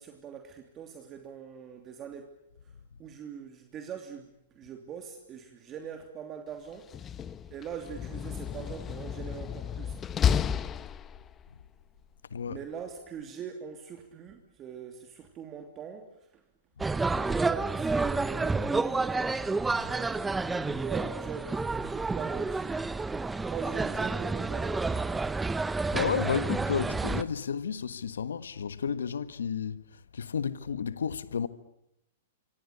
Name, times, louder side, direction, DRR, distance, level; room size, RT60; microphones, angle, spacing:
voice 1, 0.0-2.4 3.0-7.0 7.5-10.0 12.5-16.4 17.0-20.2 20.6-22.9 23.5-25.7, right 7 dB, 25° right, 3.0 m, -42 dB
Slam, 6.8-11.5, left 8 dB, 20° left, 1.1 m, -32 dB
voice 2, 12.3-12.6 19.8-19.9 20.5-20.6 25.9-29.8 30.1-31.5, left 7 dB, 90° left, 1.5 m, -32 dB
sound 1, 16.8-27.2, right 3 dB, 10° right, 1.0 m, -30 dB
26.0 x 25.5 x 8.4 m
hypercardioid pair, 135°, 0 cm